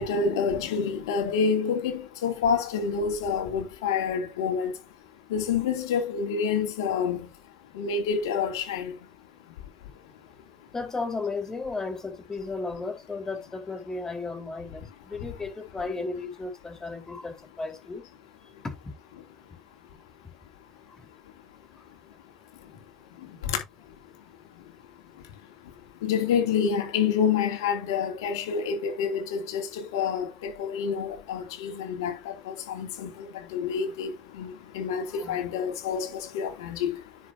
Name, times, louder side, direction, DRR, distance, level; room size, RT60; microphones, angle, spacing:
voice 1, 0.0-4.7 5.3-7.2 7.8-8.9 26.0-32.2 32.5-34.1 34.4-37.0, left 6 dB, 90° left, 2.6 m, -28 dB
voice 2, 10.7-18.0 18.6-18.7 35.1-35.4, left 3 dB, 25° left, 3.9 m, -34 dB
10.0 x 6.6 x 2.7 m
hypercardioid pair, 65°, 2 cm